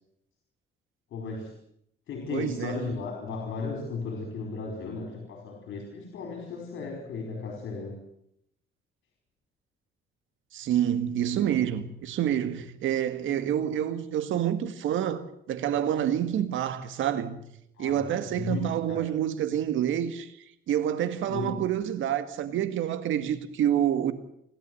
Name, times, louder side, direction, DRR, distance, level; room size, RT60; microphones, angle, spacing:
voice 1, 1.1-1.5 2.1-8.0 17.8-18.1 18.4-19.1 21.2-21.6, left 4 dB, 75° left, 4.8 m, -35 dB
voice 2, 2.3-2.8 10.5-17.4 17.8-20.3 20.7-24.1, right 10 dB, 80° right, 1.9 m, -28 dB
28.5 x 12.5 x 7.8 m
cardioid pair, 90°, 20 cm